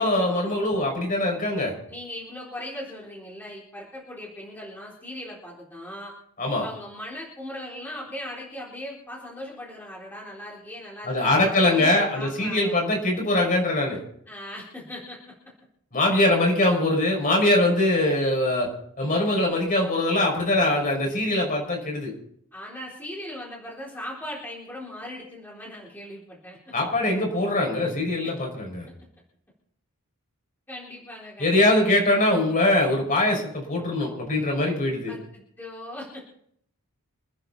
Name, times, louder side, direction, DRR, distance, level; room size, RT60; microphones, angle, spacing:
voice 1, 0.0-1.7 6.4-6.6 11.0-14.0 15.9-18.7 19.0-22.1 26.7-28.9 31.4-35.1, left 1 dB, 40° left, 0 dB, 5.8 m, -22 dB
voice 2, 1.9-6.1 6.6-13.0 14.3-15.2 22.5-26.6 28.2-28.3 30.7-31.9 35.1-36.2, left 1 dB, 10° left, -5 dB, 4.0 m, -39 dB
27.0 x 9.7 x 4.1 m, 0.67 s
head